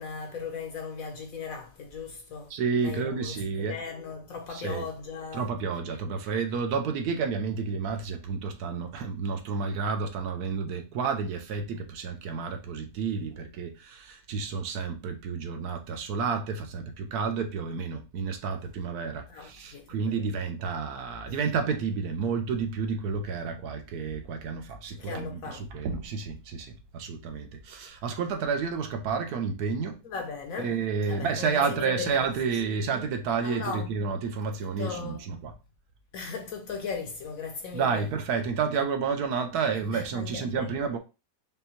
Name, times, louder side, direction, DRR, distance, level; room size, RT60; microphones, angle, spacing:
voice 1, 0.0-2.5 2.8-5.5 19.3-19.9 20.2-20.3 25.0-25.7 30.0-30.7 31.1-32.1 32.6-32.9 33.4-33.9 34.6-35.2 36.1-38.0 39.9-40.7, left 5 dB, 70° left, 0.9 m, -37 dB
voice 2, 2.5-3.8 4.5-4.9 5.3-30.0 30.6-35.5 37.7-41.0, right 5 dB, 75° right, 1.1 m, -30 dB
5.3 x 2.2 x 2.8 m
omnidirectional pair, 1.8 m